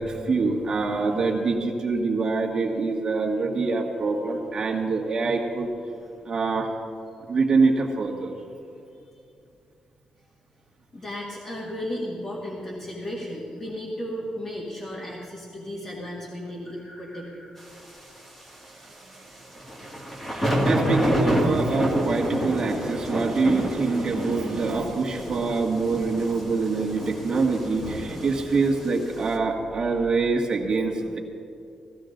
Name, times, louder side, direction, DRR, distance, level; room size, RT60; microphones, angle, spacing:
voice 1, 0.0-5.7 6.2-6.7 7.3-8.3 18.8-19.3 20.3-31.2, right 4 dB, 35° right, 1 dB, 1.8 m, -25 dB
voice 2, 10.9-17.6 21.4-21.5, equal, 30° left, -4 dB, 2.1 m, -35 dB
sound 1, 19.5-29.1, equal, 10° left, 1.9 m, -27 dB
16.5 x 15.0 x 3.9 m, 2.6 s
wide cardioid pair, 165°, 2 cm